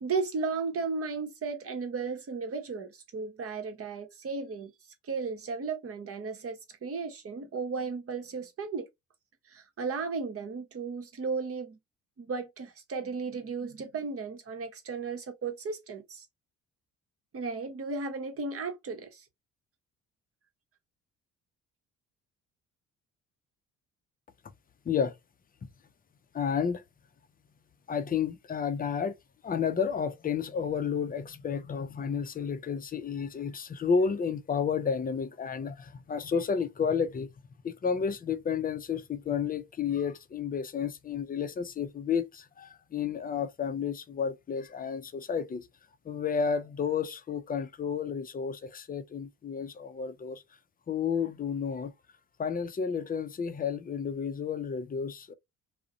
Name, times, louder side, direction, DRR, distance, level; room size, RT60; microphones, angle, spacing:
voice 1, 0.0-4.7 5.0-8.9 9.5-11.8 12.2-16.2 17.3-19.2, right 4 dB, 40° right, 0.9 m, -35 dB
voice 2, 26.3-26.8 27.9-29.2 29.4-37.3 37.6-45.7 46.0-50.4 50.9-51.9 52.4-55.3, left 6 dB, 25° left, 0.5 m, -31 dB
2.4 x 2.1 x 2.6 m
hypercardioid pair, 50°, 38 cm